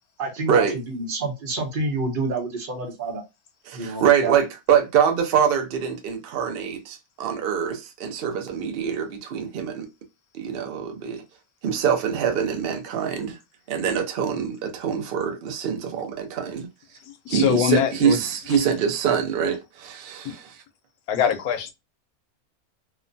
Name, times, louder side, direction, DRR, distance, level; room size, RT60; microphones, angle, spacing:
voice 1, 0.2-3.2 3.7-4.4, right 3 dB, 40° right, 0.9 m, -28 dB
voice 2, 3.7-9.9 10.3-11.2 11.6-13.4 13.7-16.7 17.3-20.6, right 8 dB, 65° right, 0.6 m, -24 dB
voice 3, 17.3-18.2 21.1-21.7, left 8 dB, 85° left, 1.1 m, -22 dB
2.8 x 2.1 x 2.5 m
omnidirectional pair, 1.5 m